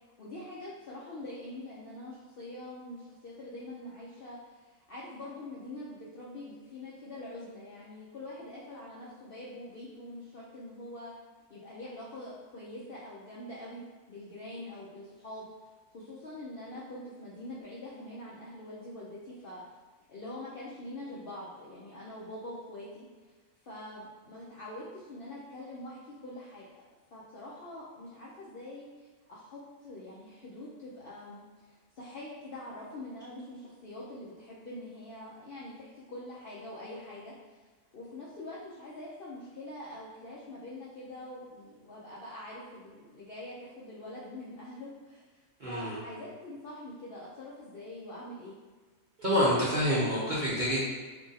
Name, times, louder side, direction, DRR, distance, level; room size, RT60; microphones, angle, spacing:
voice 1, 0.2-11.1 11.5-15.5 15.9-19.6 20.1-23.1 23.6-26.8 27.1-37.6 37.9-45.2 45.6-48.6, left 1 dB, 65° left, -7 dB, 0.5 m, -44 dB
voice 2, 45.6-46.0 49.2-50.9, equal, 45° right, -9 dB, 0.6 m, -27 dB
2.8 x 2.5 x 3.9 m, 1.4 s
omnidirectional pair, 1.6 m